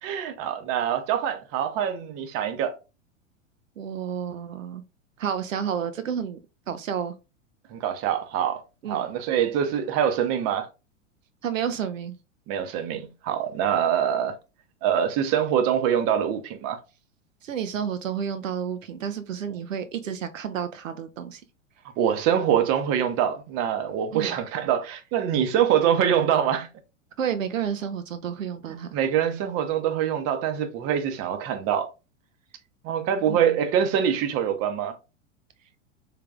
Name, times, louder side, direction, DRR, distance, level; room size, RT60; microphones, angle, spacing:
voice 1, 0.0-2.7 7.7-8.6 8.9-10.7 12.5-14.3 14.8-16.8 22.0-26.7 28.9-31.9 32.8-34.9, right 9 dB, 40° right, 0.7 m, -24 dB
voice 2, 3.8-4.8 5.2-6.4 6.7-7.1 8.8-9.1 11.4-12.2 17.4-21.4 24.1-24.4 27.2-28.9 33.3-33.4, right 8 dB, 90° right, 0.5 m, -30 dB
3.4 x 3.3 x 2.3 m
hypercardioid pair, 100°, 38 cm